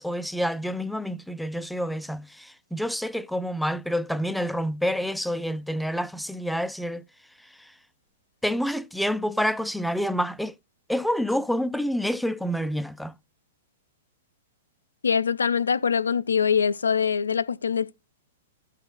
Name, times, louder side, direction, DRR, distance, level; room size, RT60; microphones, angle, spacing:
voice 1, 0.0-7.0 7.4-7.7 8.4-10.5 10.9-13.1, equal, ahead, 0.5 m, -28 dB
voice 2, 15.0-18.0, left 6 dB, 70° left, 0.5 m, -23 dB
15.0 x 5.7 x 2.2 m
figure-of-eight pair, 105°, 0 cm